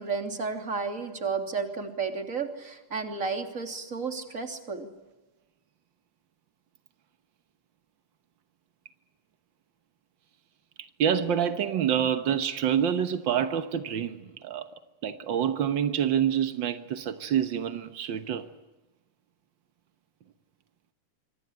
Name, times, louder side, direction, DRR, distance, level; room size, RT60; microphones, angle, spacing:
voice 1, 0.0-4.9, right 5 dB, 25° right, 3.1 m, -32 dB
voice 2, 10.8-14.7 15.0-18.5, right 9 dB, 75° right, 1.0 m, -27 dB
26.0 x 25.5 x 8.9 m
omnidirectional pair, 3.8 m